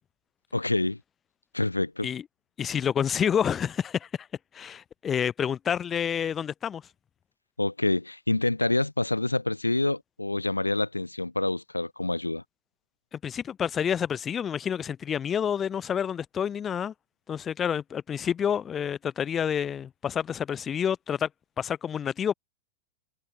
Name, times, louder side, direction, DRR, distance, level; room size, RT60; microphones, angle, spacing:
voice 1, 0.5-1.0 1.5-2.1 7.6-12.4, left 2 dB, 85° left, 0.4 m, -27 dB
voice 2, 2.6-4.1 4.5-6.8 13.1-16.9 17.3-21.3 21.6-22.3, left 8 dB, 20° left, 0.5 m, -28 dB
figure-of-eight pair, 95°, 0 cm